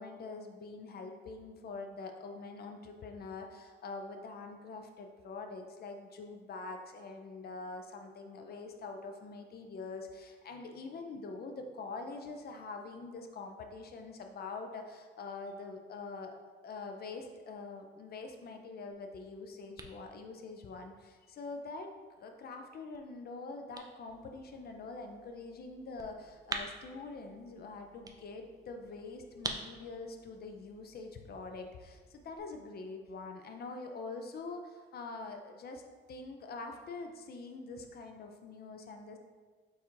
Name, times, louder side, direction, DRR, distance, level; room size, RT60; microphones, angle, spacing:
voice 1, 0.0-16.3 16.6-21.9 22.2-35.8 36.1-39.2, left 3 dB, 50° left, 4 dB, 0.5 m, -44 dB
sound 1, 18.9-32.4, right 3 dB, 20° right, 0.4 m, -48 dB
4.1 x 2.4 x 4.4 m, 1.4 s
cardioid pair, 90°, 20 cm